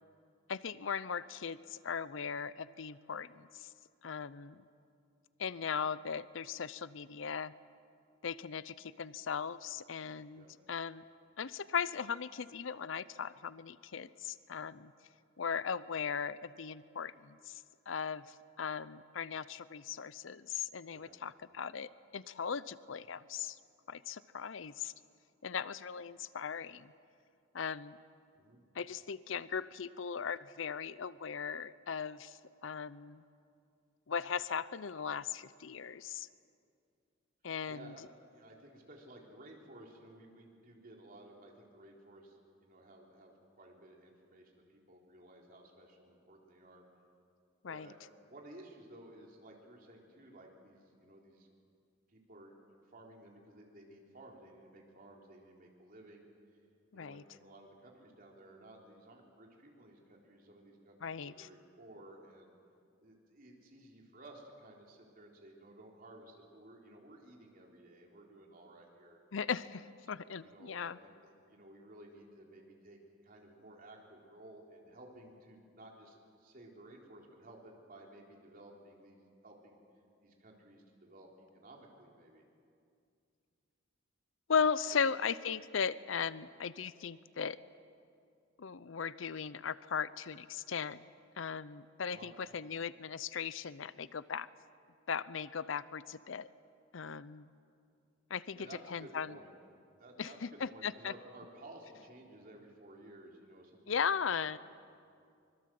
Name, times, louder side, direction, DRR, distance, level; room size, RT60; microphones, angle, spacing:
voice 1, 0.5-3.7 4.0-4.6 5.4-7.5 8.2-11.0 11.4-14.9 15.4-18.3 18.6-23.6 23.9-24.9 25.4-26.9 27.5-28.0 28.7-33.2 34.1-36.3 37.4-37.9 47.6-47.9 56.9-57.2 61.0-61.5 69.3-71.0 84.5-87.6 88.6-91.0 91.4-94.5 95.1-96.5 96.9-97.5 98.3-98.6 98.9-99.4 100.2-101.1 103.9-104.6, left 6 dB, 70° left, 17 dB, 0.6 m, -38 dB
voice 2, 37.7-38.0 38.3-46.8 47.7-51.5 52.1-52.5 52.8-56.3 56.9-62.5 63.0-69.2 70.1-79.8 80.2-82.5 84.9-85.0 92.1-92.3 98.5-99.5 100.0-104.6, right 1 dB, 45° right, 0 dB, 3.8 m, -55 dB
24.5 x 22.0 x 7.7 m, 2.4 s
head